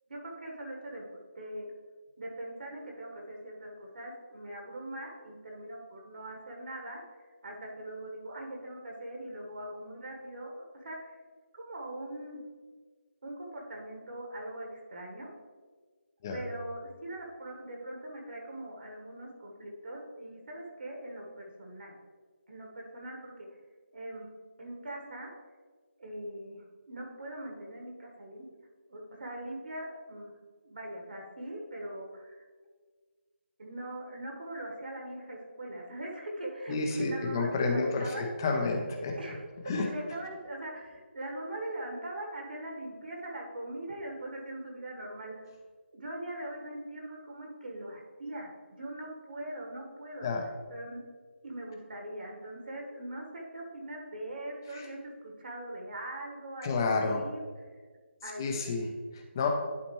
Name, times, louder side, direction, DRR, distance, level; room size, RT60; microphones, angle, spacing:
voice 1, 0.1-1.1 1.3-1.7 2.2-7.0 7.4-11.1 11.5-12.4 13.2-15.3 16.3-21.9 22.5-23.5 23.9-24.3 24.6-25.3 26.0-28.5 28.9-30.3 30.6-32.4 33.6-38.3 39.2-45.5 45.9-50.3 50.7-51.0 51.4-57.4 58.2-58.7, right 1 dB, 50° right, 0 dB, 1.4 m, -41 dB
voice 2, 36.7-39.4 39.7-39.9 50.2-50.5 54.7-54.9 56.6-57.2 58.4-59.5, left 3 dB, 20° left, 3 dB, 0.6 m, -30 dB
11.0 x 4.2 x 3.1 m, 1.5 s
figure-of-eight pair, 165°, 7 cm